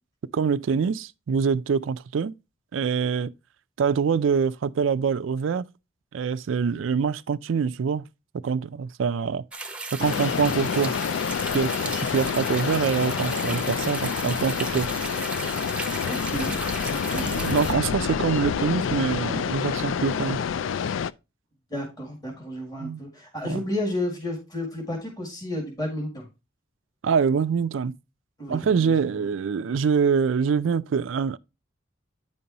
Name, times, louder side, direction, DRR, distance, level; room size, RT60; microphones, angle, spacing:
voice 1, 0.3-2.3 2.7-3.3 3.8-5.7 6.1-8.0 8.4-9.4 9.9-10.9 11.5-14.9 17.1-20.4 22.8-23.0 23.4-23.6 27.0-27.9 28.5-31.4, right 6 dB, 70° right, 0.4 m, -25 dB
sound 1, 9.5-17.7, right 3 dB, 5° right, 0.7 m, -35 dB
sound 2, 10.0-21.1, left 7 dB, 70° left, 0.3 m, -28 dB
voice 2, 16.0-17.3 17.7-17.8 21.7-26.3 28.4-28.9, left 1 dB, 20° left, 2.1 m, -32 dB
9.3 x 5.3 x 2.8 m
head